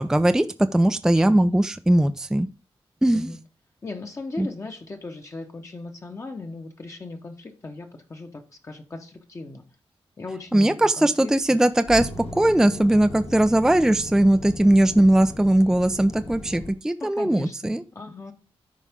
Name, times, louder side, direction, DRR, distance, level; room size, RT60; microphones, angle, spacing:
voice 1, 0.0-2.5 3.0-3.3 4.4-4.5 10.5-17.8, right 1 dB, 5° right, 0.4 m, -19 dB
voice 2, 3.8-9.6 10.2-11.6 17.0-18.3, left 3 dB, 30° left, 1.0 m, -38 dB
sound 1, 11.1-16.7, left 1 dB, 80° left, 1.8 m, -37 dB
12.5 x 4.9 x 3.5 m
wide cardioid pair, 165°, 10 cm